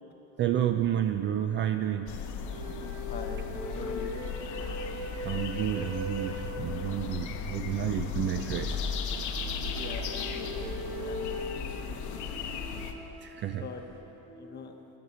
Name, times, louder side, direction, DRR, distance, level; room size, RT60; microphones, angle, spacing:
voice 1, 0.4-2.1 5.2-8.8 13.2-13.6, right 10 dB, 35° right, 7 dB, 0.4 m, -30 dB
sound 1, 2.1-12.9, left 6 dB, 55° left, 1.0 m, -36 dB
sound 2, 2.5-7.3 9.2-14.2, equal, 55° right, 3.6 m, -40 dB
voice 2, 2.8-4.3 8.1-8.8 9.6-12.2 13.5-13.8 14.4-14.7, left 5 dB, 30° left, 5 dB, 1.0 m, -44 dB
sound 3, 8.1-14.0, right 2 dB, 70° right, 1.5 m, -48 dB
13.5 x 10.5 x 5.6 m, 2.9 s
cardioid pair, 145°, 36 cm